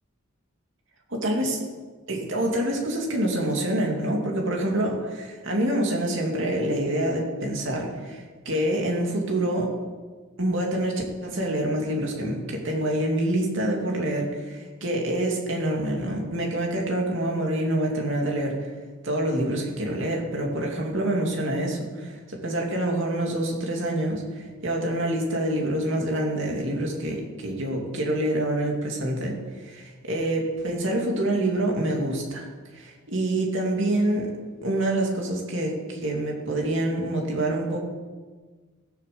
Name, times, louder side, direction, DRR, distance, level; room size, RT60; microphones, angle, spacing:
voice 1, 1.2-1.6 2.1-9.7 10.4-18.7 19.0-32.5 32.7-34.3 34.6-37.8, right 1 dB, 55° right, 0 dB, 2.7 m, -26 dB
16.0 x 7.2 x 6.9 m, 1.4 s
head